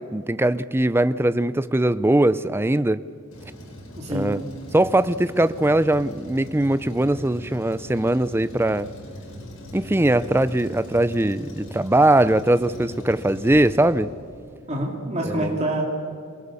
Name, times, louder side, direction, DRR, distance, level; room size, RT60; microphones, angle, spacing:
voice 1, 0.0-3.0 4.1-4.4 4.7-8.9 9.7-14.1 15.2-15.5, right 1 dB, 10° right, 15 dB, 0.5 m, -21 dB
Truck, 3.3-14.5, equal, 85° left, 5.6 m, -40 dB
voice 2, 4.0-4.3 14.7-15.8, right 1 dB, 30° right, -1 dB, 2.9 m, -26 dB
27.5 x 20.0 x 7.1 m, 2.4 s
head